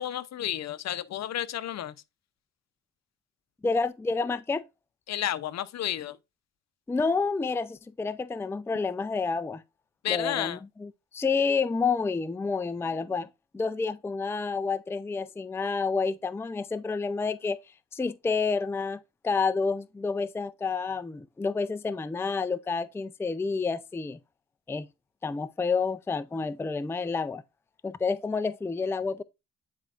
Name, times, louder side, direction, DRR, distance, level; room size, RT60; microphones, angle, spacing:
voice 1, 0.0-1.9 5.1-6.2 10.0-10.6, left 11 dB, 60° left, 0.7 m, -31 dB
voice 2, 3.6-4.6 6.9-9.6 10.1-13.3 13.5-17.6 17.9-24.2 24.7-24.9 25.2-27.4 27.8-29.2, left 4 dB, 10° left, 0.4 m, -29 dB
9.6 x 4.5 x 2.4 m
cardioid pair, 90°, 30 cm